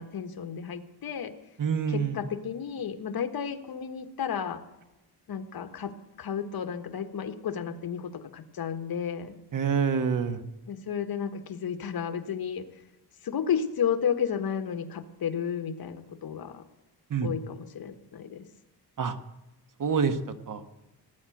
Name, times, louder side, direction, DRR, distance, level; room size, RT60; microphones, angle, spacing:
voice 1, 0.0-1.3 1.9-4.6 5.3-9.3 10.7-12.7 13.2-16.6 17.2-18.5, left 7 dB, 65° left, 9 dB, 1.5 m, -32 dB
voice 2, 1.6-2.2 9.5-10.4 17.1-17.3 19.0-19.1 19.8-20.2 20.5-20.6, right 6 dB, 55° right, 10 dB, 1.4 m, -26 dB
18.0 x 9.5 x 7.8 m, 1.0 s
wide cardioid pair, 120°, 38 cm